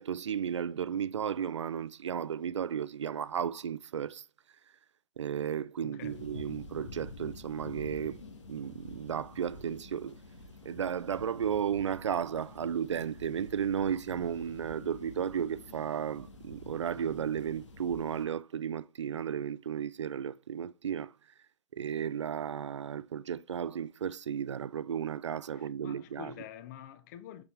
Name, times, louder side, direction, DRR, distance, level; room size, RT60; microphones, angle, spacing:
voice 1, 0.0-4.2 5.2-8.2 8.5-10.2 10.6-21.1 21.7-26.3, right 8 dB, 75° right, 0.5 m, -34 dB
voice 2, 5.8-6.2 25.5-27.4, left 11 dB, 40° left, 0.9 m, -47 dB
sound 1, 6.0-18.3, left 2 dB, 80° left, 1.7 m, -48 dB
6.6 x 5.9 x 3.3 m
figure-of-eight pair, 125°, 15 cm